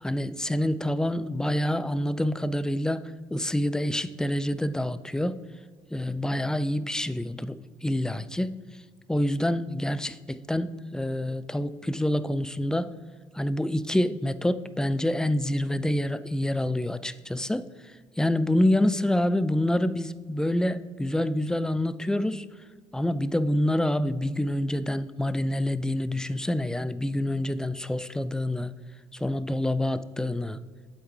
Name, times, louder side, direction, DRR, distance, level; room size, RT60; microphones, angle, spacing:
voice 1, 0.0-3.0 3.3-5.4 5.9-8.5 9.1-12.9 13.3-17.7 18.2-22.5 22.9-28.7 29.1-30.6, left 1 dB, 5° left, 14 dB, 0.3 m, -27 dB
8.0 x 7.8 x 3.3 m, 1.5 s
figure-of-eight pair, 45°, 16 cm